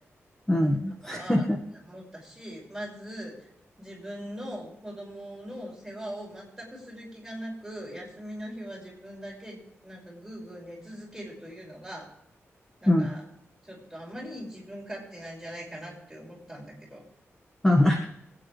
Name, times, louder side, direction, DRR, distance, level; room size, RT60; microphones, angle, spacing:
voice 1, 0.5-1.6 12.9-13.1 17.6-18.0, left 1 dB, 10° left, 1 dB, 1.7 m, -22 dB
voice 2, 1.0-1.4 1.8-3.3 3.8-12.1 12.8-13.2 13.6-17.0, equal, 5° right, -3 dB, 6.0 m, -41 dB
25.0 x 9.2 x 3.4 m, 0.77 s
wide cardioid pair, 165°, 5 cm